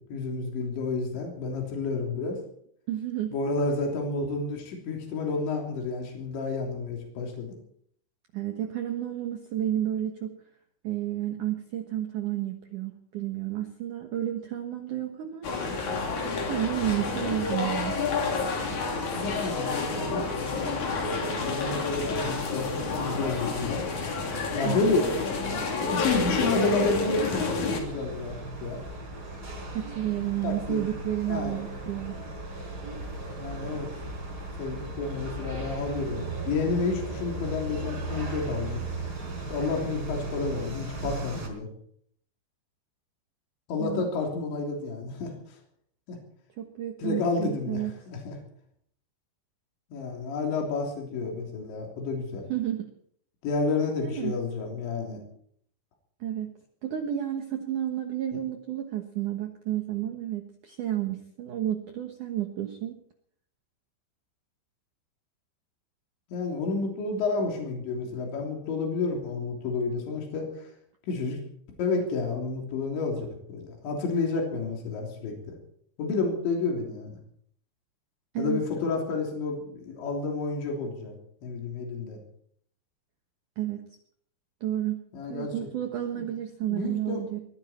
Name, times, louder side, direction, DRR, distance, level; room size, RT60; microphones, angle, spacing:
voice 1, 0.1-2.4 3.3-7.6 19.1-20.8 21.3-23.9 24.6-28.4 28.6-28.8 30.4-30.8 31.3-31.6 33.4-33.9 34.6-38.8 39.5-41.7 43.7-45.3 46.1-46.2 47.0-48.4 49.9-52.5 53.4-55.2 66.3-70.5 71.1-71.4 71.8-75.5 76.0-77.2 78.4-81.1 81.4-82.2 85.1-85.7 86.7-87.2, left 3 dB, 80° left, 1 dB, 5.5 m, -30 dB
voice 2, 2.9-3.3 8.3-10.3 10.8-15.5 16.4-18.0 24.6-24.9 29.7-32.2 43.8-44.1 46.6-47.9 52.5-52.9 54.0-54.4 56.2-56.5 56.8-63.0 78.3-78.6 83.6-83.8 84.6-85.0 85.3-87.4, right 12 dB, 60° right, 4 dB, 2.2 m, -31 dB
sound 1, 15.4-27.8, left 4 dB, 45° left, 4.0 m, -29 dB
sound 2, 27.7-41.5, right 2 dB, 25° right, 4.3 m, -36 dB
22.0 x 14.5 x 4.4 m, 0.64 s
omnidirectional pair, 5.2 m